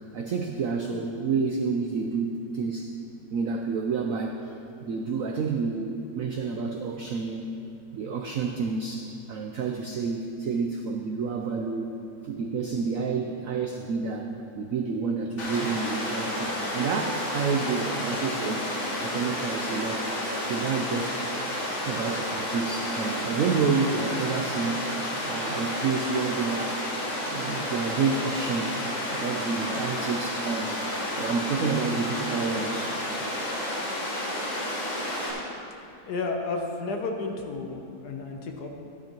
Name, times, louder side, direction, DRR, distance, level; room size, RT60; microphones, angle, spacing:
voice 1, 0.1-2.9 3.3-4.5 4.8-7.5 7.9-11.9 12.2-18.7 19.0-21.2 21.9-24.9 25.2-26.8 27.3-28.8 29.1-30.8 31.2-33.0, right 5 dB, 80° right, 3 dB, 0.7 m, -29 dB
Water, 15.4-35.3, left 1 dB, 90° left, 2.9 m, -31 dB
voice 2, 36.1-38.7, left 3 dB, 60° left, 3 dB, 1.3 m, -32 dB
13.0 x 11.0 x 3.0 m, 2.7 s
omnidirectional pair, 2.1 m